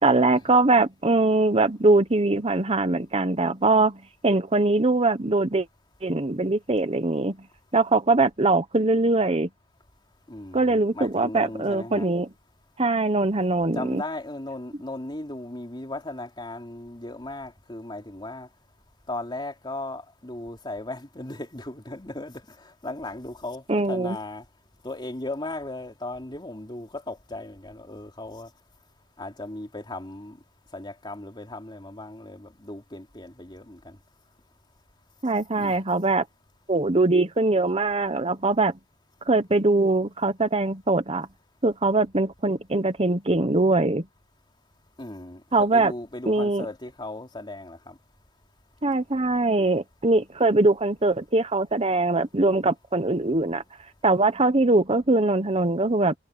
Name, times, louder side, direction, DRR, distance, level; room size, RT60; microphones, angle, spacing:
voice 1, 0.0-5.7 6.0-7.4 7.7-9.5 10.5-12.3 12.8-14.0 23.7-24.2 35.2-36.2 36.7-38.7 39.3-41.3 41.6-44.1 45.5-45.9 46.3-46.6 48.8-53.6 54.0-56.1, right 2 dB, 30° right, 1.1 m, -22 dB
voice 2, 10.3-12.1 13.7-18.5 19.1-24.4 24.8-28.5 29.2-30.4 30.7-34.0 35.6-35.8 45.0-48.0, left 2 dB, 25° left, 3.0 m, -37 dB
head